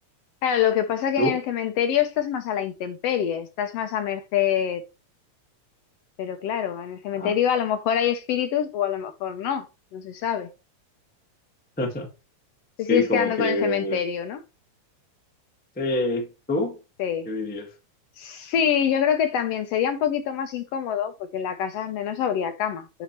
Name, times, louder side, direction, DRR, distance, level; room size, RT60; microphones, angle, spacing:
voice 1, 0.4-4.8 6.2-9.7 9.9-10.5 12.8-14.4 17.0-17.3 18.2-23.0, left 9 dB, 70° left, 1.6 m, -25 dB
voice 2, 11.8-12.1 12.9-14.0 15.8-16.8 17.2-17.7, left 1 dB, 15° left, 0.3 m, -26 dB
8.0 x 5.6 x 3.0 m
omnidirectional pair, 3.3 m